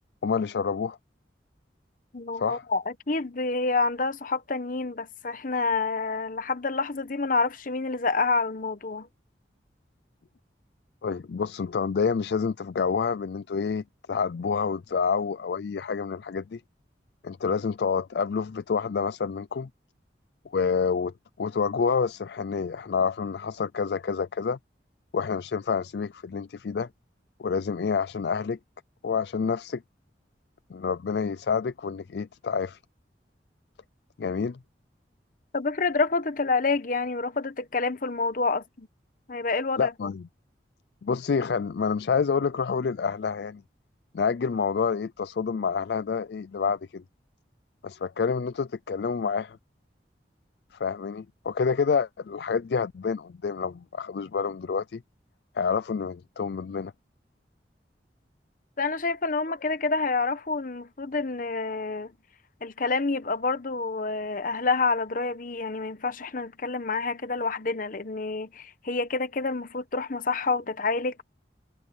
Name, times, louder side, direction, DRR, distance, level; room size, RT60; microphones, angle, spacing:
voice 1, 0.2-1.0 2.4-2.6 11.0-16.6 17.2-19.7 20.5-24.6 25.1-26.9 27.4-28.6 29.0-29.8 30.7-32.8 34.2-34.6 39.8-40.3 41.0-43.6 44.1-47.0 47.8-49.6 50.7-55.0 55.5-56.9, left 5 dB, 65° left, 0.4 m, -28 dB
voice 2, 2.1-9.1 35.5-38.9 39.3-39.9 58.8-62.1 62.6-71.2, left 3 dB, 50° left, 1.0 m, -28 dB
head